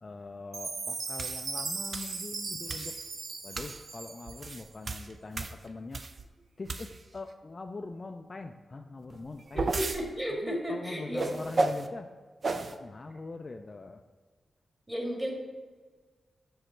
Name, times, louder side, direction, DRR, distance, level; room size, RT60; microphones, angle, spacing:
voice 1, 0.0-3.0 3.4-6.0 6.6-9.7 10.3-12.1 12.7-14.0, left 3 dB, 35° left, 5 dB, 0.3 m, -42 dB
Chime, 0.5-4.7, right 4 dB, 75° right, 0.7 m, -38 dB
sound 1, 1.2-1.4 1.9-2.2 2.7-3.0 3.5-3.8 4.3-6.2 6.7-7.2 9.1-10.0 11.2-11.9 12.4-12.8, right 3 dB, 45° right, 0.4 m, -33 dB
voice 2, 9.5-11.3 14.9-15.3, equal, 10° right, -1 dB, 1.6 m, -33 dB
6.3 x 4.9 x 4.4 m, 1.4 s
wide cardioid pair, 130°, 0 cm